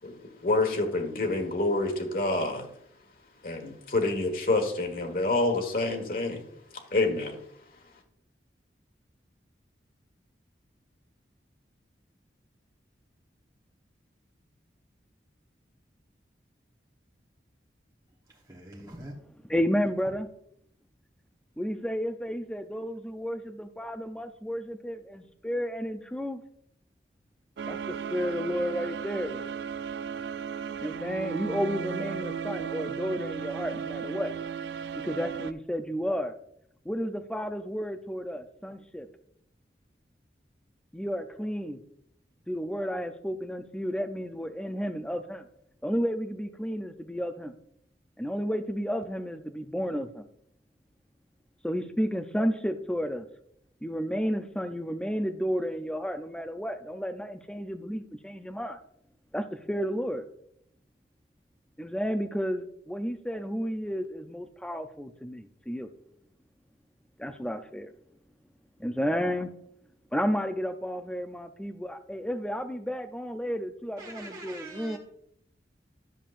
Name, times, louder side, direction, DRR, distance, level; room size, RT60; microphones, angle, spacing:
voice 1, 0.0-2.7 3.4-6.4 6.9-7.4, left 2 dB, 50° left, 4 dB, 1.4 m, -27 dB
voice 2, 18.5-19.1 74.0-75.0, right 1 dB, 20° right, -3 dB, 1.1 m, -43 dB
voice 3, 19.4-20.3 21.6-26.4 27.7-29.4 30.8-34.3 35.0-36.3 36.8-39.1 40.9-41.8 42.5-45.5 45.8-47.5 48.2-50.2 51.6-53.3 53.8-58.8 59.3-60.2 61.8-65.9 67.2-67.9 68.8-69.5 70.1-75.0, equal, 5° left, 8 dB, 0.5 m, -32 dB
sound 1, 27.6-35.5, right 7 dB, 80° right, 0.4 m, -35 dB
11.0 x 7.1 x 2.5 m, 0.72 s
head